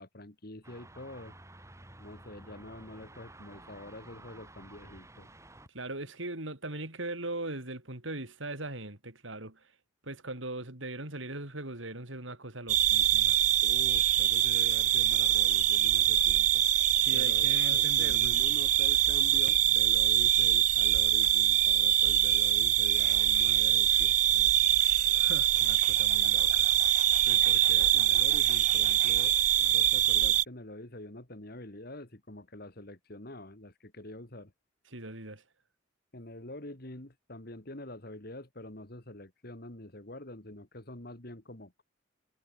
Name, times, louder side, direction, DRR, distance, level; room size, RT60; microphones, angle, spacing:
voice 1, 0.0-1.3 2.0-5.3 13.6-16.6 17.1-24.6 27.3-34.5 36.1-41.8, left 1 dB, 50° left, 2.7 m, -46 dB
sound 1, 0.6-5.7, right 1 dB, 15° right, 3.7 m, -52 dB
voice 2, 5.7-9.7 10.0-13.4 17.0-18.3 25.1-26.7 34.9-35.4, right 2 dB, 75° right, 5.2 m, -40 dB
sound 2, 12.7-30.4, right 12 dB, 40° right, 0.3 m, -24 dB
head